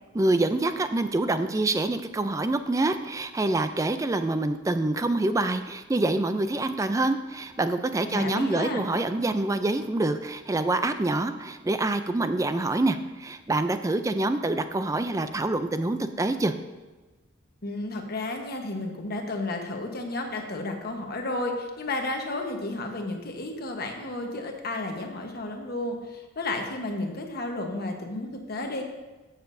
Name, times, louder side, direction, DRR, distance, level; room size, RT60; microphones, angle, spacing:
voice 1, 0.2-16.5, right 2 dB, 15° right, 9 dB, 0.3 m, -26 dB
voice 2, 8.1-8.8 17.6-28.8, left 2 dB, 50° left, 3 dB, 1.1 m, -32 dB
15.0 x 6.6 x 2.6 m, 1.2 s
head